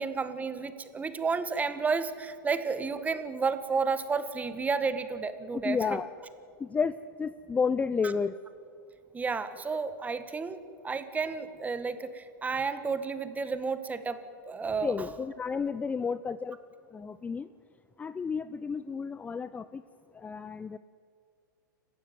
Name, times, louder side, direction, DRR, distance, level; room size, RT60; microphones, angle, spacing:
voice 1, 0.0-6.0 8.0-8.1 9.1-14.2 14.5-15.1, right 5 dB, 15° right, 10 dB, 1.8 m, -31 dB
voice 2, 5.6-6.1 6.6-8.3 14.8-16.6 16.9-17.5 18.0-19.8 20.2-20.8, left 5 dB, 15° left, 14 dB, 0.6 m, -31 dB
29.5 x 15.5 x 9.3 m, 2.3 s
hypercardioid pair, 110°, 11 cm